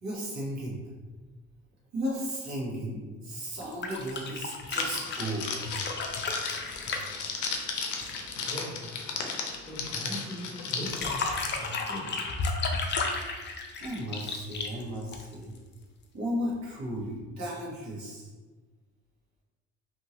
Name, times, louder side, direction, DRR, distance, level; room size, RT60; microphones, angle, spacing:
voice 1, 0.0-0.9 1.9-5.5 13.8-15.5 16.1-18.3, equal, 65° right, -4 dB, 1.1 m, -35 dB
sound 1, 3.6-8.3 10.7-15.6 17.0-17.1, left 4 dB, 40° left, 0.4 m, -33 dB
Crackle, 4.8-10.9, left 5 dB, 85° left, 0.5 m, -35 dB
voice 2, 8.4-8.9 9.6-11.2 11.4-12.1, equal, 10° left, -10 dB, 1.1 m, -39 dB
2.7 x 2.6 x 2.9 m, 1.3 s
cardioid pair, 90°, 30 cm